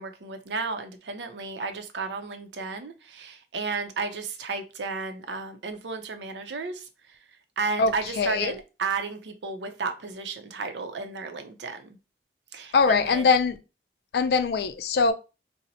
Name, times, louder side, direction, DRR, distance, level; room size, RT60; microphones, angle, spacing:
voice 1, 0.0-6.9 7.6-11.9 12.5-13.3, right 4 dB, 85° right, 0.6 m, -33 dB
voice 2, 7.8-8.6 12.7-13.6 14.1-15.1, left 4 dB, 65° left, 0.3 m, -22 dB
2.8 x 2.0 x 3.9 m
head